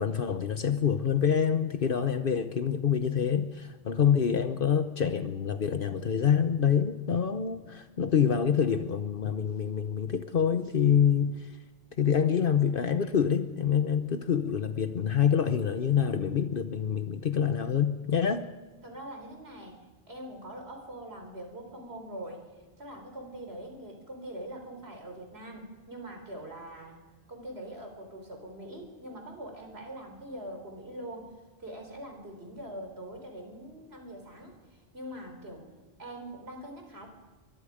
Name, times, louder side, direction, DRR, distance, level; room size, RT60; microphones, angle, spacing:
voice 1, 0.0-11.6 12.0-18.4, left 7 dB, 60° left, 9 dB, 1.1 m, -26 dB
voice 2, 18.8-22.4 22.8-27.0 27.3-31.3 31.6-35.7 36.0-37.1, right 1 dB, 90° right, 3 dB, 4.6 m, -43 dB
23.5 x 22.5 x 5.1 m, 1.3 s
omnidirectional pair, 1.0 m